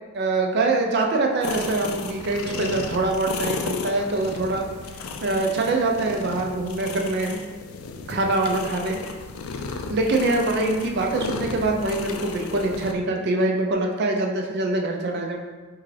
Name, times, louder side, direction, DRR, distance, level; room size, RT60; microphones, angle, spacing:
voice 1, 0.1-4.7 5.2-7.4 8.1-9.0 9.9-15.4, right 2 dB, 50° right, 2 dB, 0.4 m, -24 dB
sound 1, 1.4-12.9, left 4 dB, 75° left, 0.3 m, -34 dB
3.7 x 2.3 x 3.2 m, 1.3 s
head